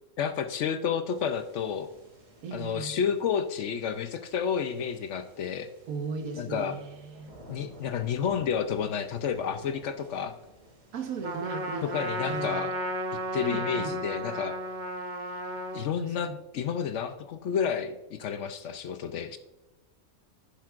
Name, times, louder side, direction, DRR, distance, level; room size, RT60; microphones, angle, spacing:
voice 1, 0.2-1.9 2.5-5.7 6.4-6.8 7.5-10.3 11.9-12.7 13.3-14.6 15.7-19.4, left 7 dB, 65° left, 9 dB, 0.8 m, -30 dB
sound 1, 1.1-12.5, right 1 dB, 65° right, 2.5 m, -54 dB
voice 2, 2.4-2.9 5.9-7.3 10.9-12.7 13.4-13.9 16.0-16.4, right 4 dB, 85° right, 6 dB, 1.5 m, -37 dB
Trumpet, 11.2-15.9, right 1 dB, 40° right, 0.8 m, -34 dB
10.5 x 10.5 x 2.5 m, 1.0 s
omnidirectional pair, 1.5 m